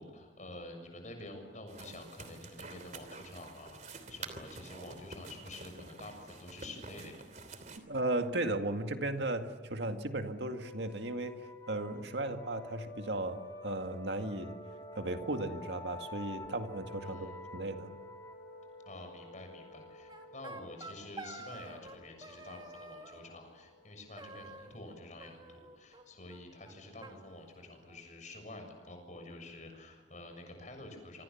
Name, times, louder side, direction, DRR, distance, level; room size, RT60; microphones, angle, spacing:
voice 1, 0.0-7.2 17.0-17.4 18.9-31.2, left 2 dB, 40° left, 5 dB, 7.0 m, -49 dB
sound 1, 1.7-7.8, right 3 dB, 40° right, 3.0 m, -48 dB
voice 2, 7.9-14.6 15.0-17.9, right 2 dB, 65° right, 6 dB, 2.1 m, -36 dB
sound 2, 10.5-25.8, left 2 dB, 20° left, 4.0 m, -50 dB
sound 3, 20.1-22.0 22.2-23.2 24.2-24.9 25.2-26.0 26.3-26.4 26.6-26.7 27.0-28.1, right 2 dB, 25° right, 2.8 m, -49 dB
28.0 x 25.0 x 7.3 m, 1.4 s
head